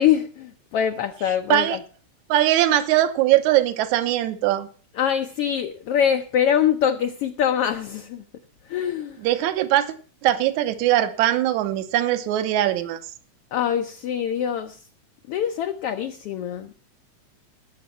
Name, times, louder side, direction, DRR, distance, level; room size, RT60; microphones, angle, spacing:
voice 1, 0.0-1.8 5.0-8.2 8.7-9.2 13.5-14.8 15.3-16.7, left 9 dB, 75° left, 7 dB, 1.4 m, -24 dB
voice 2, 2.3-4.7 9.2-10.0 10.2-13.0, right 13 dB, 75° right, 11 dB, 2.3 m, -21 dB
18.5 x 7.3 x 5.7 m, 0.40 s
omnidirectional pair, 3.5 m